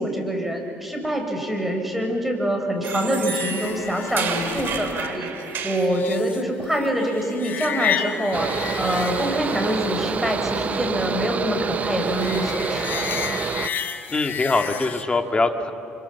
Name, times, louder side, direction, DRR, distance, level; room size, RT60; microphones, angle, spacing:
voice 1, 0.0-13.1, equal, 5° right, 2 dB, 5.2 m, -25 dB
sound 1, 2.8-5.9, right 7 dB, 55° right, 3.9 m, -31 dB
sound 2, 3.2-15.0, left 8 dB, 55° left, 2.1 m, -32 dB
Mechanical fan, 8.3-13.7, right 6 dB, 35° right, 0.8 m, -27 dB
voice 2, 14.1-15.7, left 3 dB, 25° left, 6 dB, 2.2 m, -22 dB
29.5 x 26.5 x 7.3 m, 2.8 s
cardioid pair, 100°, 4 cm